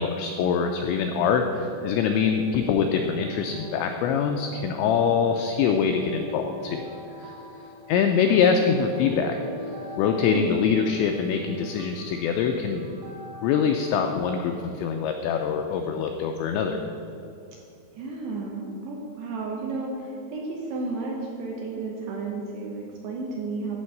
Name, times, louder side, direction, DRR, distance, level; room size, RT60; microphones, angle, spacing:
voice 1, 0.0-6.9 7.2-7.3 7.9-9.4 10.0-12.9 13.4-16.8, left 6 dB, 90° left, 4 dB, 2.5 m, -24 dB
sound 1, 1.7-14.1, left 1 dB, 45° right, 1.4 m, -43 dB
voice 2, 10.3-10.8 17.9-23.8, right 3 dB, 75° right, -1 dB, 2.5 m, -33 dB
11.5 x 4.5 x 7.6 m, 2.7 s
omnidirectional pair, 5.7 m